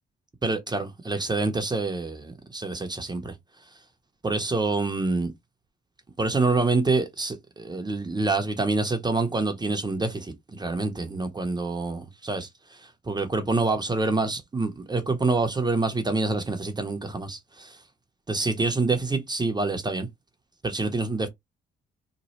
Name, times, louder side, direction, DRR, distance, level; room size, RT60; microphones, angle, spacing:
voice 1, 0.4-3.3 4.2-5.3 6.2-17.8 18.3-20.1 20.6-21.3, right 3 dB, 20° right, 0.8 m, -26 dB
3.1 x 2.2 x 4.1 m
cardioid pair, 90°, 20 cm